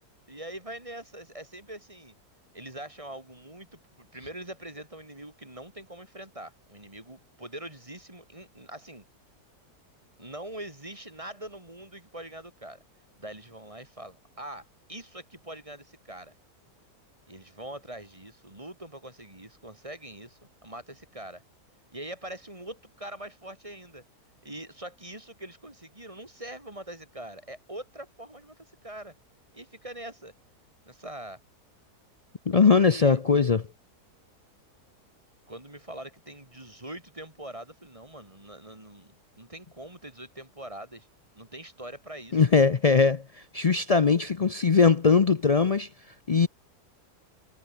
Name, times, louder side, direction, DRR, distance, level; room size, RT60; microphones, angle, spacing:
voice 1, 0.3-2.1 2.5-9.1 10.2-12.8 13.2-16.3 17.3-21.4 21.9-24.0 24.4-29.2 29.5-30.3 30.8-31.4 32.6-33.2 35.5-41.1 41.3-42.4, right 1 dB, 20° right, 3.2 m, -43 dB
voice 2, 32.5-33.6 42.3-43.2 43.5-45.9 46.3-46.5, left 5 dB, 65° left, 0.3 m, -20 dB
omnidirectional pair, 1.7 m